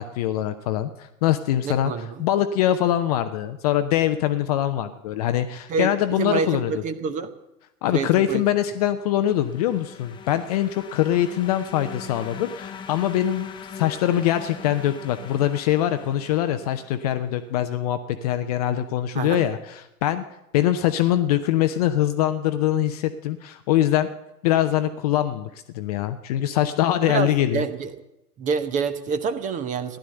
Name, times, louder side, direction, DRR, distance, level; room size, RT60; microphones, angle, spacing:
voice 1, 0.0-6.7 7.8-13.5 13.7-20.2 20.5-24.1 24.4-25.5 25.7-27.6, left 12 dB, 25° left, 10 dB, 0.6 m, -23 dB
voice 2, 1.6-2.2 5.7-5.9 6.2-7.3 7.9-8.4 19.1-19.4 27.0-27.9 28.4-30.0, right 5 dB, 15° right, 12 dB, 0.8 m, -27 dB
sound 1, 8.8-17.4, left 6 dB, 10° left, 1.0 m, -42 dB
15.5 x 11.5 x 7.9 m, 0.88 s
figure-of-eight pair, 110°, 47 cm